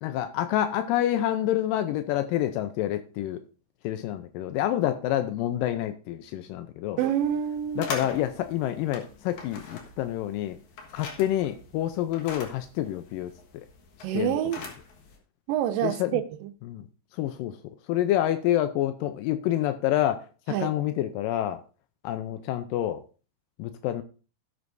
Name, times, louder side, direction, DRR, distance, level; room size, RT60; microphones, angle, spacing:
voice 1, 0.0-3.4 3.8-7.0 7.8-10.6 10.9-13.7 14.1-14.4 15.8-16.2 16.7-16.8 17.1-17.6 17.9-20.3 20.6-21.6 22.0-23.0 23.6-24.0, left 12 dB, 85° left, 2.3 m, -28 dB
sound 1, 7.0-15.2, left 4 dB, 65° left, 2.7 m, -42 dB
voice 2, 7.0-7.9 14.0-14.6 15.5-16.5 20.5-20.7, right 10 dB, 85° right, 2.4 m, -27 dB
16.5 x 7.9 x 2.6 m
omnidirectional pair, 3.9 m